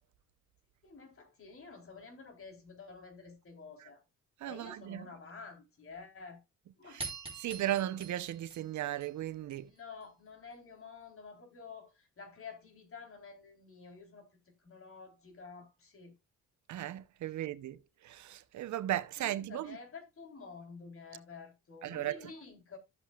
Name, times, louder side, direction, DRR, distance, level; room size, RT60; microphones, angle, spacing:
voice 1, 0.8-4.0 4.5-6.4 6.8-7.0 9.5-14.3 14.6-16.1 19.2-22.8, left 5 dB, 45° left, 3.7 m, -50 dB
voice 2, 4.4-5.1 6.9-7.1 7.4-9.7 16.7-19.8 21.8-22.3, right 13 dB, 70° right, 0.8 m, -36 dB
sound 1, 7.0-9.6, right 4 dB, 20° right, 3.8 m, -45 dB
13.5 x 7.4 x 2.4 m
cardioid pair, 90°, 30 cm